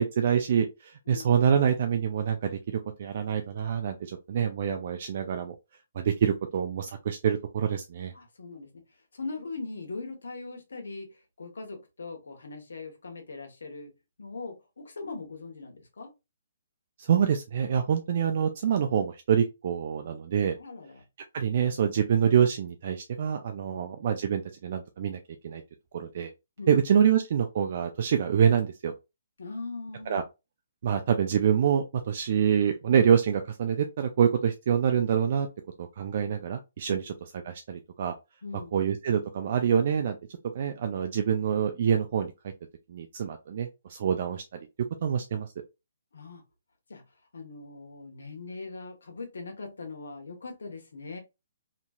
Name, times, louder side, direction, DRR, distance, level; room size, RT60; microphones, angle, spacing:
voice 1, 0.0-5.5 5.9-8.1 17.0-20.6 21.3-25.6 25.9-26.3 26.7-28.9 30.1-30.2 30.8-35.5 35.8-37.1 37.4-38.1 38.7-40.2 40.5-42.5 42.9-44.4 45.0-45.5, right 8 dB, 45° right, 0.4 m, -26 dB
voice 2, 8.1-8.8 9.1-13.9 14.2-16.1 20.6-21.0 23.6-23.8 26.6-26.7 29.4-30.2 36.9-37.1 38.4-38.7 46.1-46.4 46.9-47.0 47.3-51.2, left 3 dB, 85° left, 1.1 m, -40 dB
3.0 x 2.7 x 2.3 m
hypercardioid pair, 160°, 0 cm